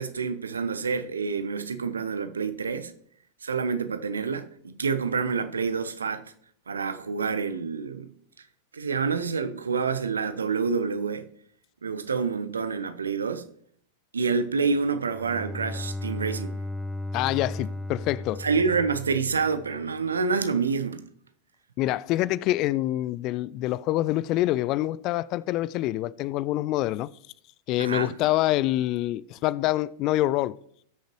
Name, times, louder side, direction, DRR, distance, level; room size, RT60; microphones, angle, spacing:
voice 1, 0.0-2.9 3.4-6.3 6.7-8.1 8.7-11.3 11.8-13.4 14.1-16.5 18.4-21.0 27.8-28.2, right 5 dB, 70° right, 0.7 m, -27 dB
Bowed string instrument, 14.9-19.9, left 1 dB, 5° left, 0.7 m, -35 dB
voice 2, 17.1-18.4 21.8-27.1 27.7-30.6, left 15 dB, 40° left, 0.3 m, -26 dB
18.0 x 6.5 x 3.1 m
figure-of-eight pair, 90°, 0 cm